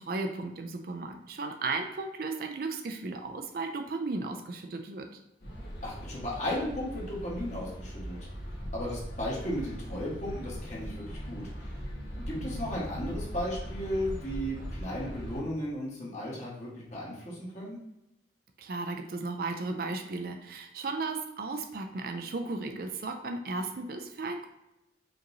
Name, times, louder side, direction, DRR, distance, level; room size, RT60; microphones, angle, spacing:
voice 1, 0.0-5.1 18.6-24.5, right 3 dB, 55° right, 5 dB, 0.4 m, -35 dB
sound 1, 5.4-15.4, equal, 80° left, 1.4 m, -40 dB
voice 2, 5.8-8.2 8.7-11.7 12.2-17.8, equal, 40° left, -5 dB, 1.3 m, -35 dB
5.1 x 2.9 x 2.7 m, 0.90 s
head